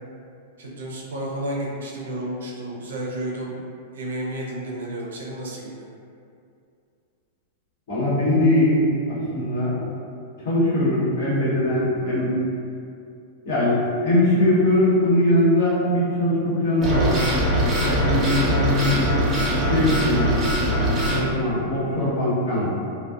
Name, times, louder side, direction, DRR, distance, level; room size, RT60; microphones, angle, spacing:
voice 1, 0.6-3.5 3.9-5.9, right 1 dB, 75° right, -3 dB, 0.5 m, -31 dB
voice 2, 7.9-9.8 10.4-12.3 13.4-17.2 17.5-19.1 19.6-20.3 21.0-22.7, left 1 dB, 60° left, -9 dB, 1.0 m, -21 dB
sound 1, 16.8-21.2, equal, 25° right, 0.7 m, -22 dB
2.4 x 2.1 x 2.4 m, 2.4 s
hypercardioid pair, 100°, 0 cm